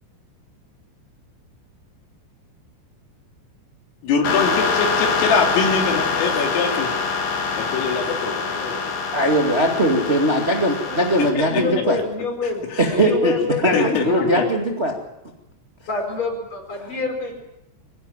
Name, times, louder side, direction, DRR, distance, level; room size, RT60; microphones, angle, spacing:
voice 1, 4.0-7.0 7.5-8.8 11.3-11.6 12.7-12.9 13.7-14.4, left 5 dB, 80° left, 2 dB, 5.5 m, -23 dB
sound 1, 4.2-11.3, left 5 dB, 55° left, 4.5 m, -24 dB
voice 2, 9.1-12.0 12.8-13.3 13.6-14.9, equal, 75° right, 0 dB, 0.6 m, -20 dB
voice 3, 11.5-12.6 13.0-14.4 15.9-17.3, left 4 dB, 25° left, 3 dB, 5.0 m, -27 dB
23.0 x 18.5 x 7.4 m, 0.89 s
omnidirectional pair, 5.8 m